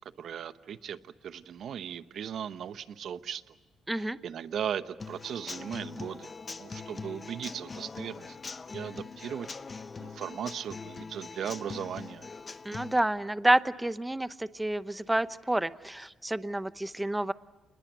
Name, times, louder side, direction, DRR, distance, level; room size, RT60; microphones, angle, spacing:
voice 1, 0.2-3.5 3.9-8.4 8.7-9.5 10.0-12.3, right 8 dB, 65° right, 13 dB, 0.9 m, -38 dB
voice 2, 3.9-4.2 12.6-17.3, right 1 dB, 10° right, 14 dB, 0.8 m, -29 dB
Human voice / Acoustic guitar / Drum, 5.0-13.0, left 4 dB, 30° left, 0.9 m, -42 dB
28.0 x 21.0 x 8.2 m, 1.1 s
cardioid pair, 90°, 0 cm